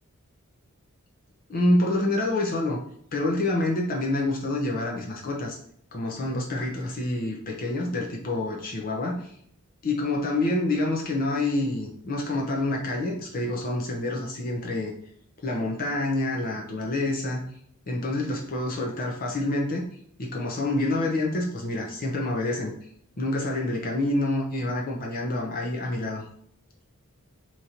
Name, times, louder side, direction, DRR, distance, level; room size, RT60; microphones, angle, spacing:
voice 1, 1.5-2.8 3.1-5.6 5.9-9.3 9.8-14.9 15.4-17.4 17.9-19.9 20.2-22.7 23.2-26.3, left 2 dB, 40° left, -1 dB, 0.6 m, -27 dB
3.0 x 2.6 x 4.2 m, 0.66 s
head